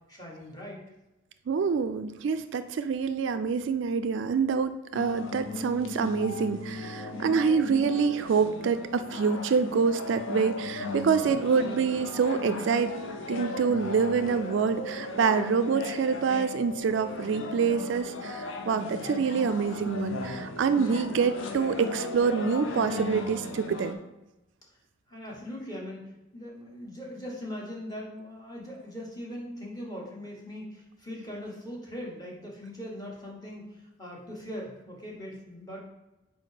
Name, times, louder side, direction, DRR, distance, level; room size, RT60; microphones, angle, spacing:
voice 1, 0.1-0.8 11.2-11.6 18.9-19.3 25.1-26.0 26.3-35.9, equal, 20° left, -3 dB, 1.3 m, -40 dB
voice 2, 1.5-12.9 13.3-24.0, right 5 dB, 65° right, 10 dB, 0.3 m, -26 dB
sound 1, 4.9-23.9, left 2 dB, 75° left, 0.6 m, -37 dB
4.6 x 4.1 x 4.9 m, 0.96 s
head